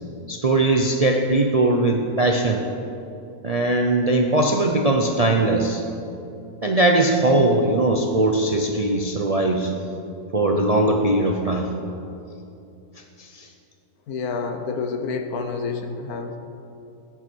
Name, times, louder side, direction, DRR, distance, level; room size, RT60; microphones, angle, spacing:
voice 1, 0.3-2.6 3.4-5.8 6.6-9.7 10.3-11.7 13.2-13.5, right 2 dB, 45° right, 2 dB, 0.5 m, -20 dB
voice 2, 14.1-16.4, left 4 dB, 70° left, 6 dB, 1.4 m, -28 dB
17.0 x 8.0 x 4.6 m, 2.8 s
omnidirectional pair, 1.6 m